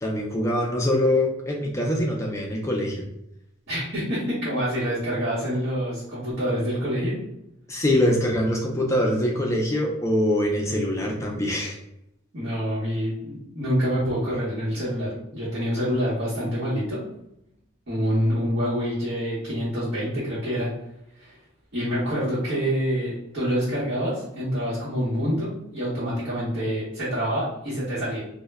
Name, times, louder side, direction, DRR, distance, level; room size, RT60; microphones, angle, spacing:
voice 1, 0.0-3.0 7.7-11.8, left 1 dB, 15° left, 0 dB, 0.3 m, -24 dB
voice 2, 3.7-7.1 12.3-17.0 17.9-20.7 21.2-21.4 21.7-28.2, equal, 55° right, -10 dB, 0.9 m, -26 dB
2.1 x 2.0 x 3.3 m, 0.81 s
head